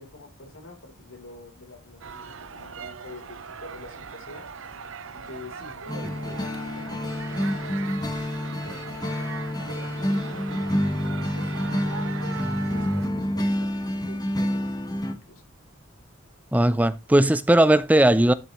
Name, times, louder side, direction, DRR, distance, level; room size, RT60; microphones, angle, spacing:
voice 1, 0.0-4.5 5.1-13.7 14.1-15.5, left 2 dB, 85° left, 3.6 m, -47 dB
sound 1, 2.0-13.1, right 6 dB, 75° right, 0.8 m, -40 dB
sound 2, 5.9-15.1, left 1 dB, 20° left, 1.3 m, -28 dB
voice 2, 16.5-18.3, right 1 dB, 10° right, 0.4 m, -18 dB
12.5 x 6.7 x 3.1 m
head